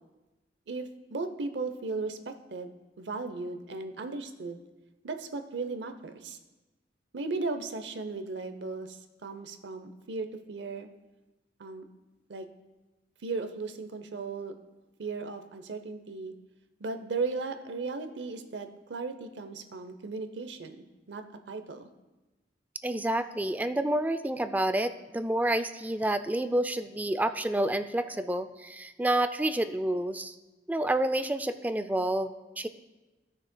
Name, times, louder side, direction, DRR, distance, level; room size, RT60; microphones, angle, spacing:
voice 1, 0.7-4.6 5.0-6.4 7.1-10.9 11.6-11.8 12.3-12.5 13.2-14.5 15.0-16.3 16.8-21.9, right 3 dB, 75° right, 8 dB, 0.7 m, -36 dB
voice 2, 22.8-30.3 30.7-32.7, right 1 dB, 10° right, 10 dB, 0.3 m, -29 dB
15.5 x 6.4 x 2.2 m, 1.1 s
head